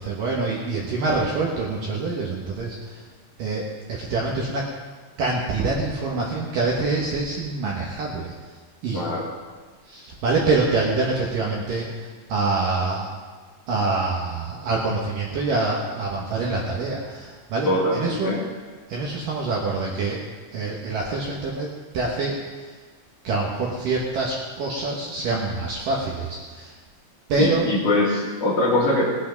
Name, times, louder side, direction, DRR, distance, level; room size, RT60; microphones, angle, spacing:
voice 1, 0.0-3.0 3.4-4.7 5.2-8.5 8.8-9.1 9.8-13.1 13.7-18.5 18.9-20.3 20.5-22.8 23.2-26.8 27.3-27.7, right 3 dB, 65° right, -3 dB, 2.4 m, -26 dB
voice 2, 8.9-9.3 17.6-18.4 27.4-29.0, left 2 dB, 50° left, -5 dB, 3.4 m, -22 dB
19.0 x 8.5 x 5.3 m, 1.4 s
omnidirectional pair, 5.2 m